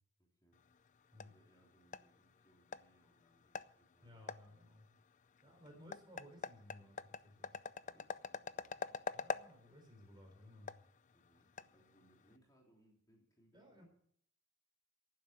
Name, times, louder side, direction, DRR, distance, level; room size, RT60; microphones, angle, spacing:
voice 1, 0.2-0.6 1.2-4.6 5.4-5.8 7.8-9.0 11.1-13.8, equal, 20° left, -2 dB, 3.2 m, -72 dB
sound 1, 0.5-12.4, left 5 dB, 40° left, 0.4 m, -48 dB
voice 2, 4.0-4.9 5.4-7.6 9.1-10.7 13.5-13.9, left 1 dB, 20° right, 3 dB, 4.0 m, -58 dB
11.5 x 9.6 x 7.9 m, 0.65 s
head